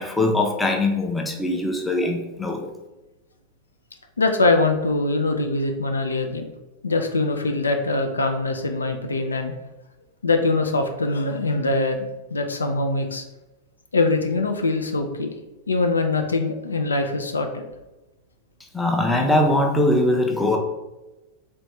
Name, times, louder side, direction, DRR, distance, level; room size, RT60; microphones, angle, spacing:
voice 1, 0.0-2.6 18.7-20.6, left 1 dB, 5° left, 1 dB, 0.5 m, -21 dB
voice 2, 4.2-6.5 6.8-9.5 10.2-12.1 12.3-13.2 13.9-15.3 15.7-17.6, left 2 dB, 75° left, 5 dB, 0.3 m, -23 dB
3.4 x 2.5 x 3.1 m, 1.0 s
figure-of-eight pair, 90°, 0 cm